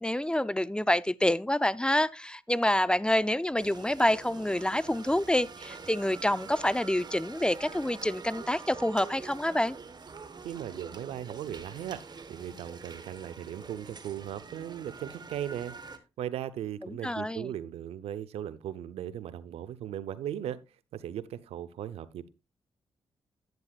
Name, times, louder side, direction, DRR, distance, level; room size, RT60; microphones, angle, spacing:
voice 1, 0.0-9.8 16.8-17.5, left 1 dB, 10° left, 0.4 m, -27 dB
sound 1, 3.6-16.0, right 5 dB, 45° right, 1.3 m, -46 dB
voice 2, 10.4-15.8 16.2-20.6 20.9-22.3, right 10 dB, 85° right, 0.6 m, -38 dB
10.5 x 9.6 x 2.4 m
supercardioid pair, 55°, 10 cm